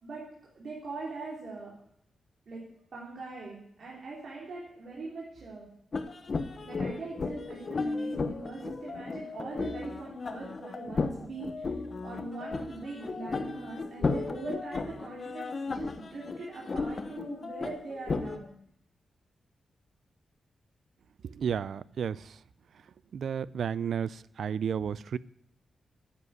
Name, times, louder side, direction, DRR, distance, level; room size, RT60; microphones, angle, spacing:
voice 1, 0.5-1.7 2.5-2.6 2.9-5.7 6.6-11.7 12.0-18.5, right 3 dB, 50° right, -4 dB, 3.2 m, -41 dB
sound 1, 5.9-18.4, left 4 dB, 35° left, 1.0 m, -34 dB
voice 2, 21.2-22.4 23.1-25.2, right 7 dB, 65° right, 19 dB, 0.4 m, -32 dB
10.0 x 8.2 x 9.5 m, 0.67 s
wide cardioid pair, 165°, 0 cm